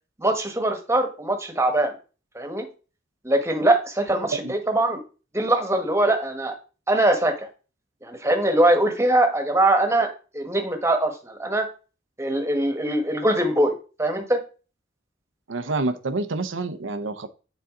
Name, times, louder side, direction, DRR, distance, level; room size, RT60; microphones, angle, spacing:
voice 1, 0.2-1.9 2.3-2.7 3.2-5.0 5.3-6.5 6.9-7.3 8.0-10.1 10.3-11.7 12.2-14.4, right 1 dB, 15° right, 5 dB, 1.4 m, -22 dB
voice 2, 15.5-17.3, right 3 dB, 75° right, 12 dB, 0.7 m, -28 dB
9.6 x 4.1 x 3.8 m, 0.34 s
head